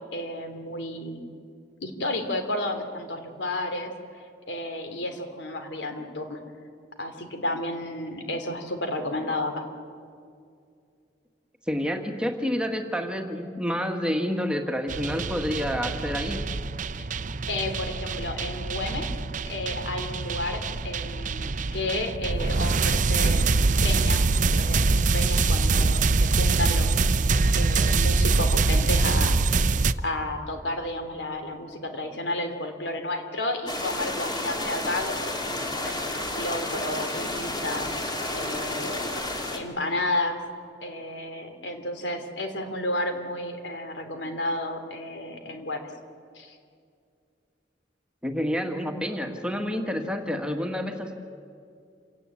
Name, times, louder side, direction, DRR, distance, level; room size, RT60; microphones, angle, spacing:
voice 1, 0.1-1.2 1.8-3.9 4.5-6.4 7.0-9.7 17.0-17.1 17.5-19.1 19.5-23.4 23.8-27.0 27.6-35.2 35.6-35.9 36.4-37.9 38.3-39.1 39.5-40.4 40.8-45.8 46.3-46.6, left 1 dB, 80° left, 6 dB, 3.0 m, -32 dB
voice 2, 11.7-16.4 48.2-51.1, equal, 5° right, 4 dB, 1.8 m, -28 dB
sound 1, 14.9-29.9, right 3 dB, 45° right, 0.6 m, -24 dB
sound 2, 33.7-39.6, left 1 dB, 25° left, 2.8 m, -31 dB
28.0 x 17.5 x 8.5 m, 2.3 s
head